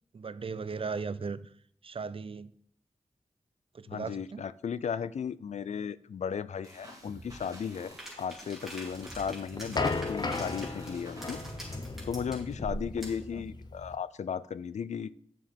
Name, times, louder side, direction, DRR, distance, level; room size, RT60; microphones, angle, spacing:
voice 1, 0.1-1.5 1.8-2.5 3.7-4.4 13.3-13.4, right 5 dB, 50° right, 0.5 m, -37 dB
voice 2, 3.9-11.4 12.0-15.1, left 7 dB, 75° left, 0.4 m, -35 dB
sound 1, 6.6-11.9, right 1 dB, 30° right, 2.5 m, -49 dB
sound 2, 8.0-13.3, right 1 dB, 5° right, 3.3 m, -44 dB
sound 3, 9.0-13.9, left 3 dB, 35° left, 0.7 m, -36 dB
9.2 x 7.1 x 3.6 m
wide cardioid pair, 75°, 12 cm